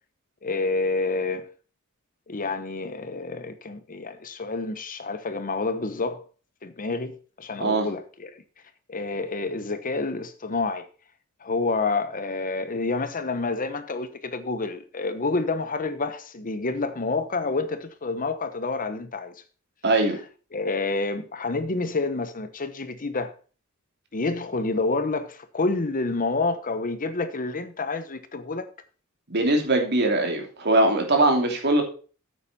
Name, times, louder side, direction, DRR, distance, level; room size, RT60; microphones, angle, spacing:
voice 1, 0.4-1.5 2.3-6.2 6.6-8.3 8.9-10.9 11.4-19.3 20.5-23.3 24.1-28.7, left 3 dB, 40° left, 1.0 m, -28 dB
voice 2, 19.8-20.2 29.3-31.8, right 2 dB, 55° right, 2.9 m, -21 dB
9.1 x 8.8 x 4.2 m
head